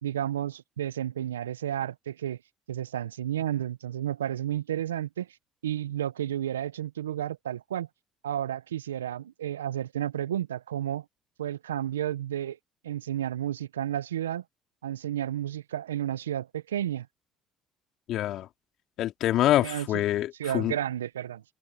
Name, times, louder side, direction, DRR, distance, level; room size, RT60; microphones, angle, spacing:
voice 1, 0.0-2.4 2.7-5.3 5.6-7.9 8.2-11.0 11.4-12.6 12.8-14.4 14.8-17.1 19.6-19.9 20.4-21.4, right 11 dB, 85° right, 1.0 m, -32 dB
voice 2, 18.1-18.5 19.0-20.8, left 13 dB, 60° left, 3.0 m, -25 dB
hypercardioid pair, 50°, 0 cm